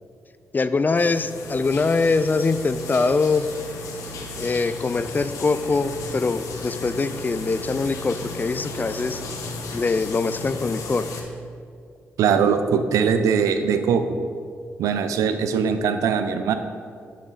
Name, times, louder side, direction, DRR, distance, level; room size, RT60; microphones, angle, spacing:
voice 1, 0.5-3.5 4.4-9.2 9.7-11.1, left 3 dB, 35° left, 13 dB, 0.4 m, -23 dB
sound 1, 1.0-11.2, left 2 dB, 80° left, 1.0 m, -35 dB
voice 2, 12.2-14.2 14.8-16.5, right 6 dB, 85° right, 9 dB, 0.5 m, -21 dB
8.6 x 6.3 x 4.1 m, 2.3 s
supercardioid pair, 50°, 6 cm